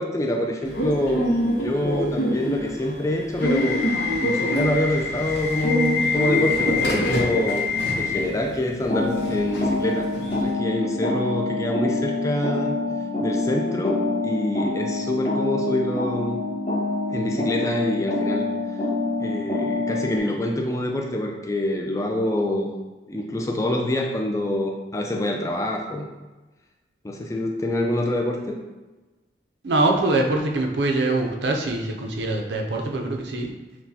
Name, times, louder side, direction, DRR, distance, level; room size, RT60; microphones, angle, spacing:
voice 1, 0.0-3.9 4.2-7.6 8.0-10.1 10.4-12.7 13.2-16.4 17.1-18.5 19.2-22.7 23.1-26.1 27.0-28.6, left 1 dB, 15° left, 2 dB, 0.4 m, -26 dB
Subway metro underground / Alarm, 0.7-10.5, left 2 dB, 75° left, 0.8 m, -25 dB
sound 1, 8.9-20.2, left 2 dB, 35° left, 0.8 m, -26 dB
voice 2, 29.6-33.5, right 2 dB, 75° right, 1 dB, 0.6 m, -23 dB
6.0 x 2.2 x 2.8 m, 1.2 s
head